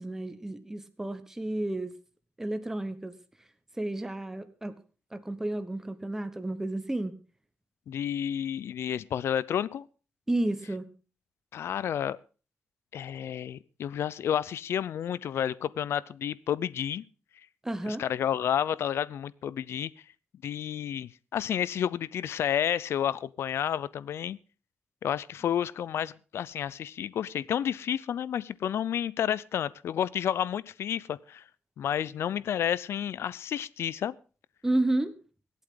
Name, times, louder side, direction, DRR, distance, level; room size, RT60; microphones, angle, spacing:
voice 1, 0.0-1.9 2.4-3.1 3.8-4.7 5.1-7.2 10.3-10.9 17.6-18.0 34.6-35.2, right 1 dB, 10° right, 10 dB, 1.2 m, -31 dB
voice 2, 7.9-9.9 11.5-12.2 12.9-17.0 17.9-19.9 20.4-24.4 25.0-31.4 31.8-34.1, left 9 dB, 75° left, 20 dB, 0.6 m, -30 dB
24.0 x 8.4 x 3.8 m, 0.36 s
cardioid pair, 100°, 4 cm